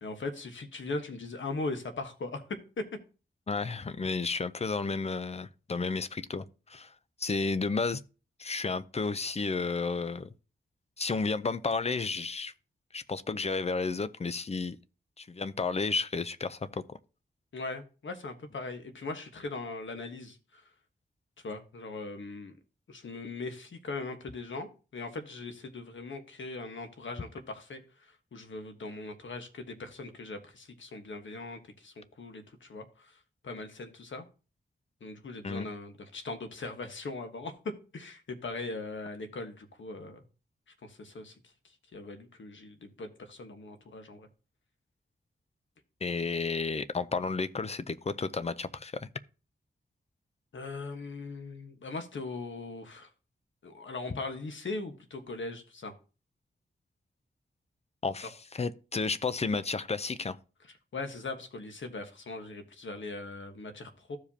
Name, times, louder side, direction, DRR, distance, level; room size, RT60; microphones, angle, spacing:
voice 1, 0.0-2.4 17.5-20.6 21.4-22.6 22.9-33.1 33.4-34.3 35.0-37.5 37.9-40.2 40.8-41.3 41.9-44.3 50.5-53.1 53.6-55.9 60.9-64.2, left 3 dB, 80° left, 1.3 m, -40 dB
voice 2, 3.5-6.9 7.2-8.0 8.4-10.3 11.0-12.5 12.9-14.8 15.2-17.0 35.4-35.7 46.0-49.1 58.0-60.4, left 4 dB, 35° left, 0.5 m, -32 dB
15.0 x 5.0 x 2.8 m
wide cardioid pair, 120°, 20 cm